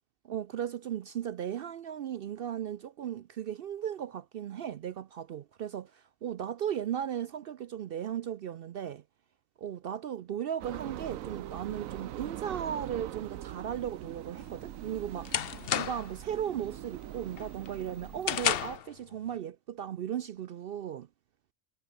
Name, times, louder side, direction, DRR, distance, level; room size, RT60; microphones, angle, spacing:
voice 1, 0.2-9.0 9.6-15.3 15.7-21.1, right 9 dB, 65° right, 0.6 m, -36 dB
sound 1, 10.6-18.8, right 13 dB, 85° right, 1.1 m, -42 dB
sound 2, 14.4-16.2 16.6-17.0 17.4-18.9, left 10 dB, 55° left, 0.8 m, -32 dB
omnidirectional pair, 1.4 m